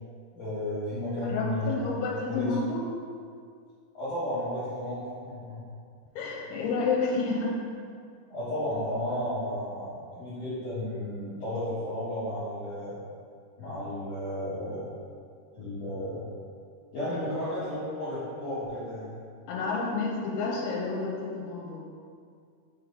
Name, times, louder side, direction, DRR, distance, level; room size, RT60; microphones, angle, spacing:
voice 1, 0.3-2.0 2.3-2.5 3.9-5.6 8.3-12.9 13.6-14.9 15.5-16.2 16.9-19.1, left 1 dB, 60° left, -14 dB, 1.7 m, -33 dB
voice 2, 1.3-2.8 6.2-7.6 19.5-21.8, left 3 dB, 85° left, -2 dB, 3.0 m, -30 dB
6.3 x 4.7 x 3.9 m, 2.2 s
omnidirectional pair, 5.3 m